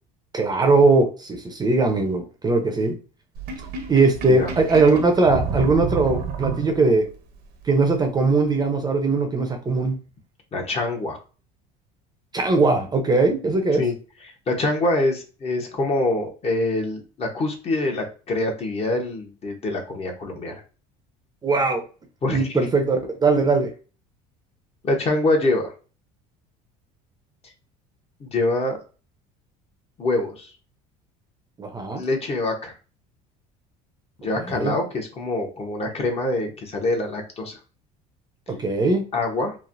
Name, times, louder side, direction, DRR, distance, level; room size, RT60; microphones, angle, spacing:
voice 1, 0.3-3.0 3.9-7.1 7.6-9.9 12.3-13.8 21.4-21.8 22.3-23.7 31.6-32.0 34.3-34.8 38.5-39.0, right 3 dB, 20° right, 4 dB, 0.6 m, -20 dB
Sink (filling or washing), 3.3-7.1, right 5 dB, 60° right, 0.8 m, -29 dB
voice 2, 10.5-11.2 13.8-13.9 14.5-20.5 22.2-22.6 24.8-25.7 28.2-28.8 30.0-30.5 31.9-32.7 34.2-37.6 39.1-39.6, left 2 dB, 35° left, 2 dB, 0.9 m, -25 dB
3.1 x 2.0 x 2.5 m, 0.35 s
supercardioid pair, 95°, 18 cm